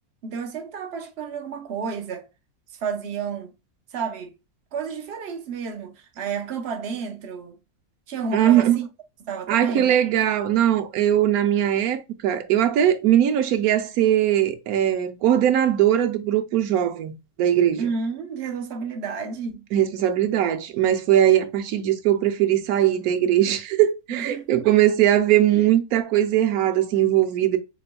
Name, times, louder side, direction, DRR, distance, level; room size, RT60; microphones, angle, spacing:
voice 1, 0.2-2.3 2.8-3.5 3.9-4.3 4.7-7.6 8.1-8.9 9.2-10.0 17.8-19.7 24.1-24.7 25.5-25.6, right 5 dB, 50° right, 1.0 m, -31 dB
voice 2, 8.3-8.8 9.5-17.1 17.4-17.9 19.7-27.6, right 11 dB, 90° right, 1.1 m, -20 dB
6.6 x 3.0 x 2.2 m
omnidirectional pair, 1.5 m